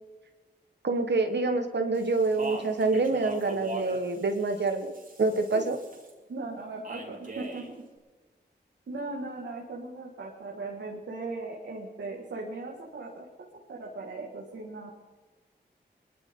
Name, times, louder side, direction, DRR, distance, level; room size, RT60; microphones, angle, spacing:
voice 1, 0.8-4.9 5.2-5.8, right 3 dB, 75° right, 6 dB, 1.5 m, -26 dB
Speech, 1.9-6.1 6.8-7.7, right 2 dB, 50° right, 3.3 m, -40 dB
voice 2, 6.3-7.6 8.9-13.3 13.7-14.9, right 3 dB, 90° right, -2 dB, 2.1 m, -38 dB
20.0 x 13.0 x 3.9 m, 1.3 s
cardioid pair, 45°, 18 cm